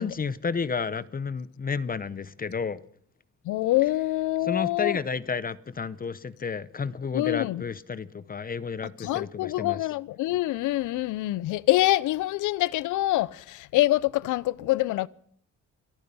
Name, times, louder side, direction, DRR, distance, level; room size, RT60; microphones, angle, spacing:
voice 1, 0.0-2.8 4.4-9.8, left 5 dB, 30° left, 0.7 m, -31 dB
voice 2, 3.5-5.0 7.1-7.6 9.0-15.1, left 17 dB, 85° left, 0.6 m, -25 dB
27.0 x 9.6 x 5.5 m
cardioid pair, 90°, 30 cm